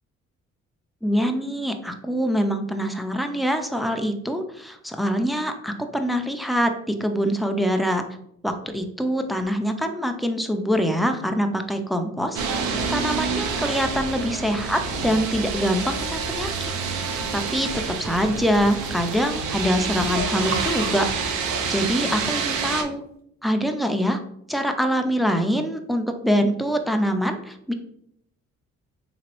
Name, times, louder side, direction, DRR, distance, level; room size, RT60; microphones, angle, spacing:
voice 1, 1.0-8.0 8.4-16.7 17.1-21.1 21.7-23.0 23.4-24.2 24.5-27.7, equal, ahead, 5 dB, 0.4 m, -24 dB
sound 1, 12.3-22.8, right 5 dB, 85° right, 0.6 m, -28 dB
sound 2, 13.8-19.5 19.7-20.0 20.3-21.2 22.1-22.2, right 3 dB, 45° right, 0.8 m, -38 dB
sound 3, 16.5-16.9 17.2-17.5 17.7-18.0 18.3-18.6 18.9-19.1 19.4-19.7 20.0-20.8 21.1-21.4 21.6-21.9 22.2-22.3, left 1 dB, 65° left, 0.7 m, -41 dB
3.6 x 3.0 x 2.9 m, 0.71 s
cardioid pair, 90°, 30 cm